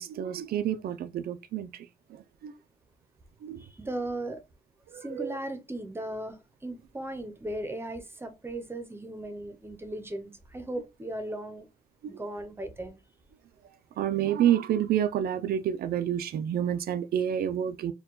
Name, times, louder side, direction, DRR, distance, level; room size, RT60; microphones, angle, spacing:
voice 1, 0.0-2.5 3.4-3.6 4.9-5.4 12.0-12.2 14.0-17.9, right 10 dB, 80° right, 0.4 m, -29 dB
voice 2, 3.6-4.4 5.0-11.7 12.2-13.0, right 1 dB, 15° right, 0.6 m, -37 dB
4.5 x 2.2 x 3.7 m
wide cardioid pair, 175°, 15 cm